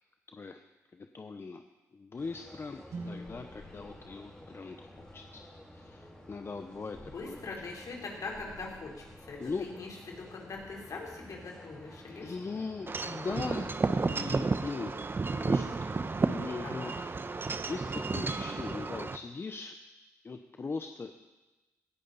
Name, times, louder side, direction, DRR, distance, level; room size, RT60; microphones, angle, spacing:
voice 1, 0.3-0.6 0.9-1.6 1.9-5.4 5.7-7.4 9.4-9.8 12.2-15.7 16.2-16.9 17.7-19.7 20.2-21.2, left 4 dB, 40° left, 6 dB, 0.9 m, -40 dB
sound 1, 2.2-14.2, left 1 dB, 15° left, 4.5 m, -52 dB
sound 2, 2.9-6.9, right 2 dB, 65° right, 6.7 m, -48 dB
voice 2, 7.0-12.6 16.6-17.0, left 3 dB, 65° left, -1 dB, 3.9 m, -42 dB
Wind chime / Wind, 12.9-19.2, right 3 dB, 35° right, 1.0 m, -32 dB
18.5 x 14.5 x 4.2 m, 1.1 s
supercardioid pair, 55°, 6 cm